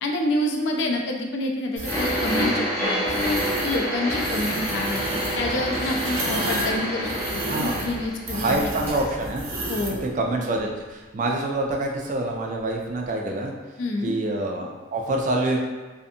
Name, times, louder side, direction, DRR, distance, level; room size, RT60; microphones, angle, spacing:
voice 1, 0.0-3.2 3.6-5.0 5.3-8.9 9.7-10.0 13.8-14.1, left 1 dB, 60° left, 1 dB, 0.4 m, -28 dB
sound 1, 1.8-2.5 3.1-3.8 4.1-10.0, right 2 dB, 80° right, 0.6 m, -32 dB
sound 2, 1.9-8.6 8.9-9.0 9.8-9.9, equal, 10° left, 0.8 m, -27 dB
voice 2, 7.5-7.8 8.3-9.4 10.0-13.5 14.0-15.6, right 2 dB, 40° right, 1 dB, 0.3 m, -26 dB
2.6 x 2.4 x 2.5 m, 1.3 s
head